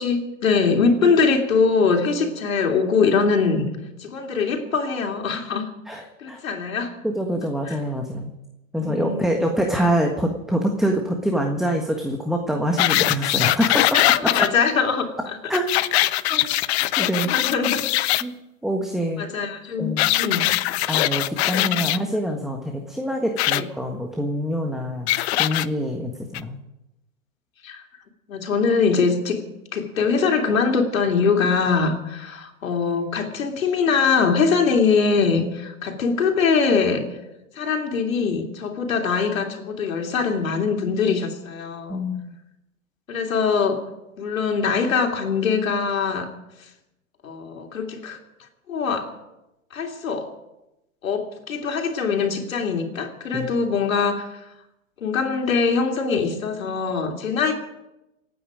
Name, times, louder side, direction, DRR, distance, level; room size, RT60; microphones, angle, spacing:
voice 1, 0.0-3.7 4.0-5.7 6.2-6.9 8.8-9.4 14.1-15.0 17.3-17.8 19.2-20.5 21.5-21.9 23.5-23.6 27.6-27.8 28.3-29.4 29.7-37.0 37.5-42.0 43.1-43.8 44.2-46.3 47.2-48.2 48.7-49.1 49.7-50.3 51.0-54.4 55.0-57.5, left 5 dB, 80° left, 3 dB, 3.3 m, -22 dB
voice 2, 5.8-6.4 7.0-8.3 8.7-13.8 15.5-17.3 18.2-18.3 18.6-19.2 19.8-20.1 20.9-26.6 41.9-42.3 53.3-53.5, equal, ahead, 2 dB, 1.5 m, -25 dB
sound 1, 12.8-14.5 15.5-18.2 20.0-22.0 23.4-23.6 25.1-25.7 26.3-26.4, left 16 dB, 50° left, 0.7 m, -21 dB
28.0 x 9.4 x 5.1 m, 0.94 s
hypercardioid pair, 115°, 40 cm